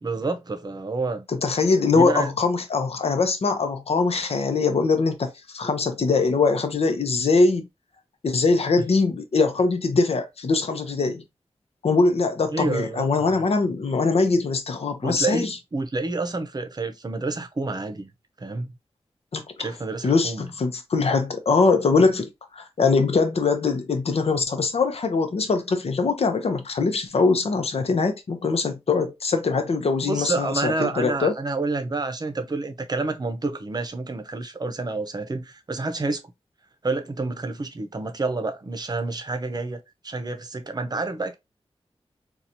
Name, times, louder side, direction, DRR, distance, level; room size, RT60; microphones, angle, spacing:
voice 1, 0.0-1.2 1.9-2.3 8.8-8.9 12.5-13.4 15.0-18.1 18.4-18.7 19.6-20.5 30.0-36.2 36.8-41.3, right 3 dB, 40° right, 0.7 m, -29 dB
voice 2, 1.3-7.7 8.2-11.2 11.8-15.6 19.3-19.7 20.0-31.3, left 4 dB, 70° left, 0.7 m, -22 dB
3.9 x 2.4 x 2.8 m
wide cardioid pair, 80°, 11 cm